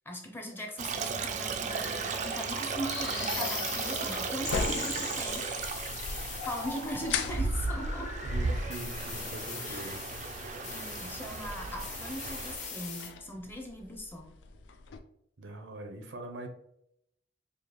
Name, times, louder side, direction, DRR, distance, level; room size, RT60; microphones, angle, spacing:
voice 1, 0.1-5.4 6.4-8.1 9.6-9.9 10.6-14.3, equal, 10° left, 2 dB, 0.6 m, -40 dB
Stream, 0.8-12.6, right 4 dB, 40° right, 0.3 m, -35 dB
sound 1, 1.7-13.1, left 5 dB, 40° left, 0.8 m, -40 dB
sound 2, 3.7-15.0, left 5 dB, 70° left, 0.3 m, -41 dB
voice 2, 8.2-10.0 15.4-16.5, right 2 dB, 80° right, 5 dB, 0.6 m, -42 dB
4.8 x 2.3 x 3.0 m, 0.76 s
head